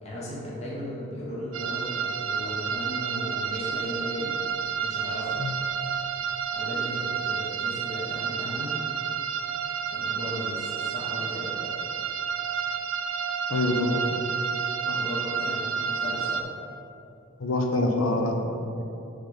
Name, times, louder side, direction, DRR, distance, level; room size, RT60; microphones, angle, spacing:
voice 1, 0.0-4.3 4.8-5.4 6.5-8.8 9.9-11.6 14.9-16.4, equal, 30° left, -7 dB, 1.2 m, -36 dB
sound 1, 1.5-16.4, right 6 dB, 75° right, 0.4 m, -30 dB
voice 2, 13.5-14.1 14.9-15.0 17.4-18.8, left 2 dB, 85° left, 2 dB, 0.8 m, -26 dB
5.8 x 3.5 x 5.0 m, 2.9 s
head